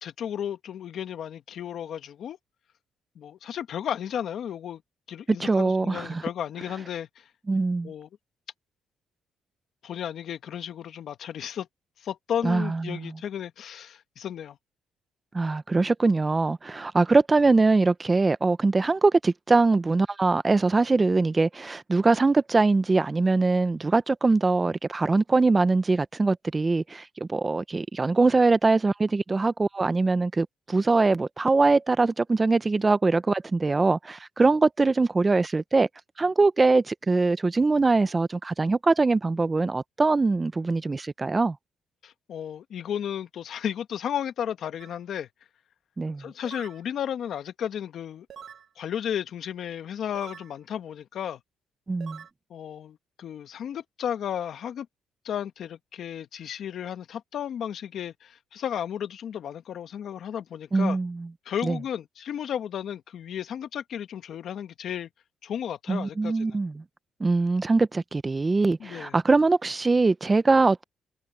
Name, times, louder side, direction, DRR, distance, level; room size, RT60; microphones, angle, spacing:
voice 1, 0.0-2.4 3.1-4.8 5.1-7.3 7.8-8.1 9.8-11.7 12.0-14.6 42.0-45.3 46.0-48.3 48.8-51.4 52.5-54.9 55.2-61.0 61.4-65.1 65.4-66.6 68.8-69.2, left 9 dB, 65° left, 1.5 m, -34 dB
voice 2, 5.4-6.2 7.5-7.9 12.4-13.0 15.3-35.9 36.2-41.6 46.0-46.3 51.9-52.2 60.7-61.3 61.6-61.8 65.9-66.8 67.2-70.8, right 3 dB, 25° right, 0.9 m, -22 dB
sound 1, 44.8-45.0 46.4-46.8 48.3-48.7 50.2-50.5 52.0-52.3, right 8 dB, 60° right, 2.3 m, -44 dB
cardioid pair, 90°, 0 cm